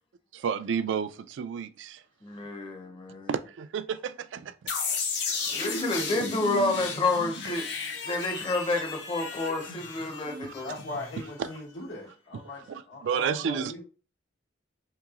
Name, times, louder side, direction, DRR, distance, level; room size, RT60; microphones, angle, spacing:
voice 1, 0.3-2.0 3.3-4.5 10.4-10.6 11.4-11.5 12.7-13.8, right 7 dB, 75° right, 0.3 m, -31 dB
voice 2, 2.2-3.3 5.5-7.7 8.1-10.7, left 2 dB, 30° left, 0.6 m, -29 dB
sound 1, 4.7-11.5, left 4 dB, 65° left, 0.7 m, -34 dB
voice 3, 10.6-13.8, left 2 dB, 85° left, 1.2 m, -39 dB
3.8 x 2.9 x 2.4 m
head